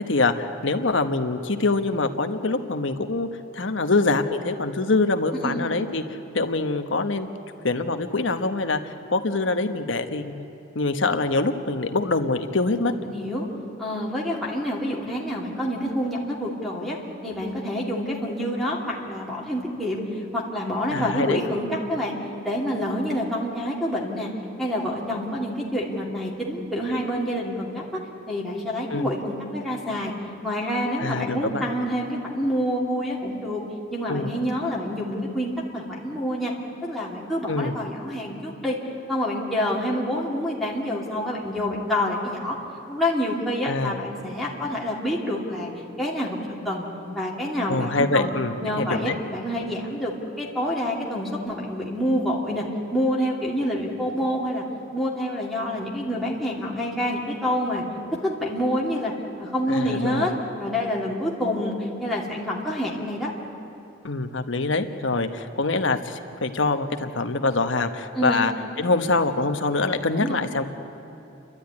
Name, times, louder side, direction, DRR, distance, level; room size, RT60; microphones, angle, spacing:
voice 1, 0.1-3.3 3.5-7.3 7.6-10.5 10.7-12.9 20.9-21.4 28.9-29.1 31.0-31.7 34.1-34.3 37.5-37.8 43.6-44.0 47.7-49.2 59.7-60.3 64.0-68.5 68.8-70.7, left 3 dB, 70° left, 7 dB, 1.2 m, -24 dB
voice 2, 12.7-13.5 13.8-17.0 17.2-20.0 20.3-22.2 22.4-24.3 24.6-27.8 28.3-30.1 30.4-33.6 33.9-36.5 36.8-38.8 39.1-42.6 42.9-45.7 46.0-46.9 47.1-48.3 48.6-52.6 52.9-54.6 54.9-57.8 58.2-59.1 59.4-60.3 60.6-63.3 68.1-68.5 70.1-70.4, equal, ahead, -5 dB, 2.7 m, -27 dB
29.5 x 12.5 x 9.7 m, 3.0 s
head